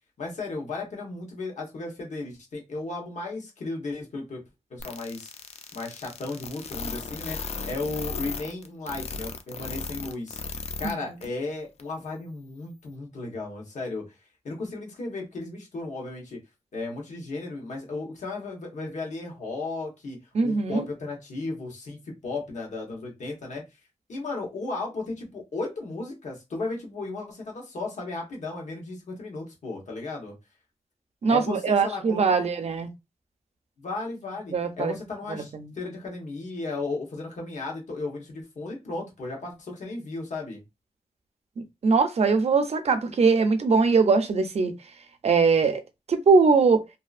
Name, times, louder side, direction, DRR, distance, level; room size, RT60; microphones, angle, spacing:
voice 1, 0.2-4.4 4.7-5.3 5.7-7.4 7.6-10.4 10.8-14.1 14.4-16.4 16.7-23.6 24.1-30.3 31.3-32.5 33.8-40.6, left 3 dB, 80° left, 1.0 m, -35 dB
sound 1, 4.8-10.9 11.2-11.3 11.8-11.9, left 5 dB, 60° left, 0.4 m, -35 dB
voice 2, 20.3-20.8 31.2-32.9 34.5-34.9 35.3-35.7 41.8-44.7 45.2-45.8 46.1-46.8, right 4 dB, 60° right, 0.5 m, -21 dB
2.7 x 2.4 x 2.4 m
wide cardioid pair, 110°, 12 cm